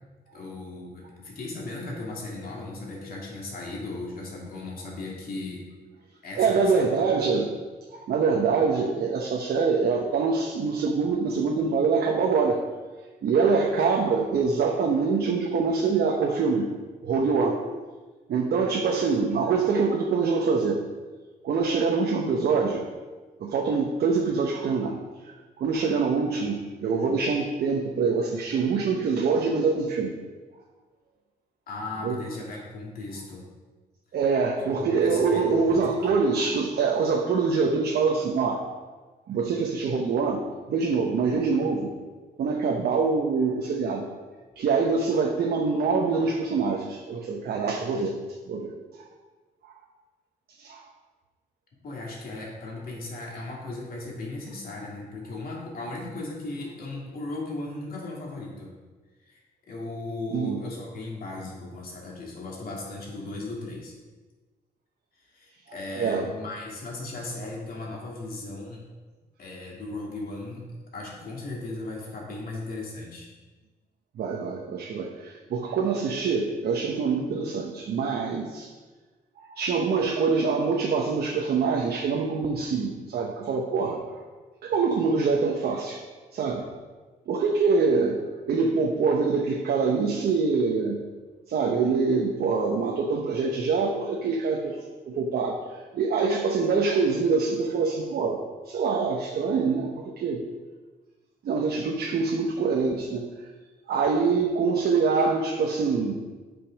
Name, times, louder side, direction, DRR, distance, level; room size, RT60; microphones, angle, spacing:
voice 1, 0.3-5.6 6.2-6.9 31.7-33.4 34.6-36.1 51.8-58.7 59.2-59.4 59.7-63.9 65.2-68.8 69.4-70.7 70.9-73.3 92.5-92.6, left 2 dB, 65° left, -3 dB, 2.7 m, -37 dB
voice 2, 6.3-7.5 7.9-12.6 13.2-16.7 17.0-17.6 18.3-20.8 21.4-22.8 23.4-25.0 25.3-30.1 32.0-32.2 34.1-38.6 39.3-41.9 42.4-44.1 44.6-48.1 48.5-49.1 49.6-49.7 50.6-50.8 60.3-60.6 65.7-66.3 74.2-78.7 79.4-84.2 84.6-86.0 86.3-86.6 87.3-91.0 91.5-94.8 95.1-95.6 95.9-98.4 98.6-100.4 101.4-103.3 103.9-106.2, right 4 dB, 75° right, 0 dB, 1.0 m, -25 dB
8.8 x 5.4 x 5.2 m, 1.3 s
cardioid pair, 105°, 16 cm